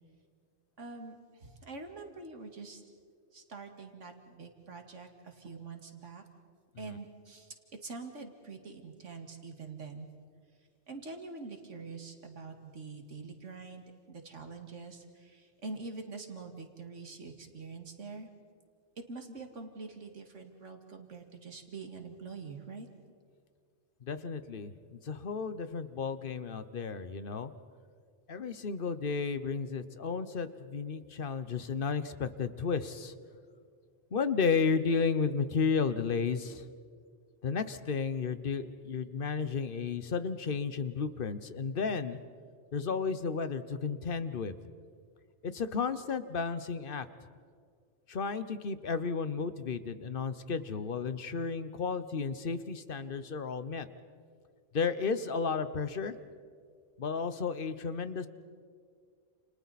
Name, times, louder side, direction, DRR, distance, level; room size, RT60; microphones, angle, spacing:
voice 1, 0.8-1.2 1.4-2.8 3.3-6.2 6.8-7.5 7.8-10.1 10.9-18.3 19.1-22.9, right 4 dB, 80° right, 4 dB, 2.4 m, -45 dB
voice 2, 24.0-27.5 28.3-33.1 34.1-36.6 37.4-42.2 42.7-44.6 45.4-47.1 48.1-53.9 54.7-56.2 57.0-58.3, left 5 dB, 50° left, 12 dB, 1.1 m, -33 dB
30.0 x 29.0 x 4.2 m, 2.1 s
omnidirectional pair, 1.3 m